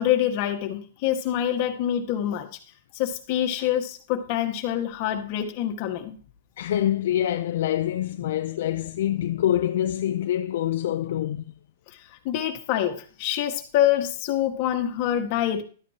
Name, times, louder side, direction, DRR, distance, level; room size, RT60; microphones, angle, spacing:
voice 1, 0.0-2.5 2.9-6.2 12.3-15.6, left 11 dB, 40° left, 1.7 m, -25 dB
voice 2, 6.6-11.4, left 11 dB, 60° left, 0.6 m, -25 dB
12.5 x 9.2 x 2.9 m
hypercardioid pair, 160°, 0 cm